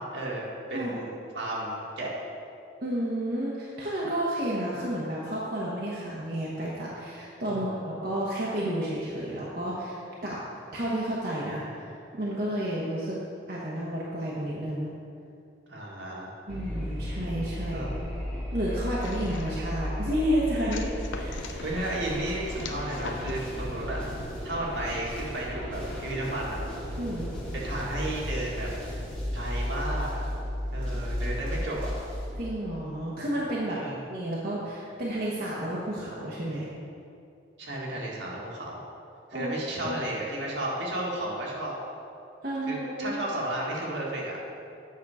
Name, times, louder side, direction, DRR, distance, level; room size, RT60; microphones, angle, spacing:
voice 1, 0.0-2.1 7.5-7.7 15.7-16.3 17.7-18.1 21.6-26.6 27.5-28.7 29.3-30.2 30.7-31.9 33.7-34.0 37.6-38.8 39.3-41.7 42.7-44.3, right 1 dB, 75° right, -4 dB, 1.9 m, -33 dB
voice 2, 2.8-10.4 10.7-13.2 13.5-14.9 16.5-17.9 18.5-21.6 27.0-27.3 32.4-33.8 34.1-36.7 39.3-39.5 39.8-40.0 42.4-43.2, right 1 dB, 50° right, -6 dB, 1.1 m, -31 dB
sound 1, 16.5-32.4, equal, 5° left, 1.4 m, -34 dB
sound 2, 19.0-19.7 20.7-21.7 22.6-23.5, left 4 dB, 80° left, 0.6 m, -41 dB
8.5 x 6.2 x 4.8 m, 2.5 s
head